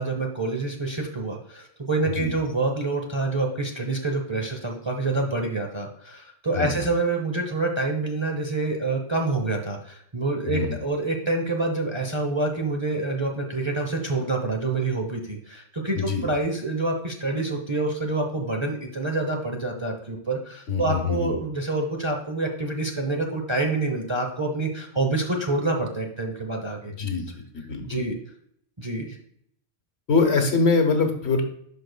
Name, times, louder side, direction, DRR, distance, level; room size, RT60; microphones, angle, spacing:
voice 1, 0.0-26.9 27.8-28.2 28.8-29.2, right 2 dB, 25° right, 2 dB, 0.7 m, -27 dB
voice 2, 10.5-10.8 16.0-16.3 20.7-21.3 26.9-28.0 30.1-31.4, left 4 dB, 60° left, 5 dB, 1.3 m, -24 dB
11.5 x 4.6 x 2.2 m, 0.68 s
omnidirectional pair, 1.3 m